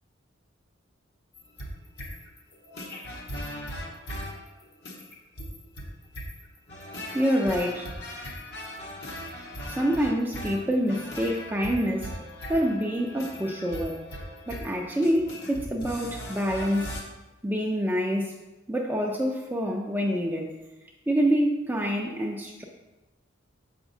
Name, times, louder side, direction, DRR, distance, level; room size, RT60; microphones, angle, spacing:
sound 1, 1.3-17.0, equal, 55° left, 1.1 m, -39 dB
voice 1, 7.1-7.9 9.7-12.2 12.5-14.1 14.5-17.0 17.4-18.3 18.7-20.6 21.1-22.6, equal, 10° right, 0 dB, 0.4 m, -26 dB
7.1 x 5.8 x 2.7 m, 1.0 s
head